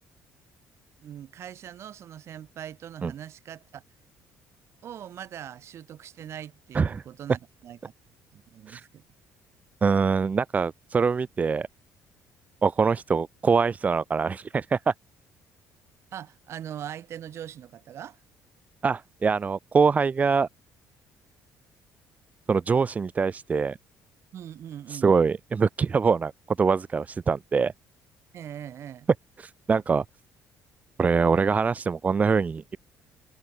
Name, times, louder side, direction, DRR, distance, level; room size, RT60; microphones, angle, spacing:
voice 1, 1.0-3.8 4.8-7.9 8.3-9.0 16.1-18.2 24.3-25.1 28.3-29.1, right 10 dB, 50° right, 7.8 m, -41 dB
voice 2, 9.8-11.7 12.6-14.9 18.8-20.5 22.5-23.8 24.9-26.3 26.6-27.7 29.4-30.0 31.0-32.8, right 5 dB, 25° right, 2.8 m, -24 dB
cardioid pair, 145°, 6 cm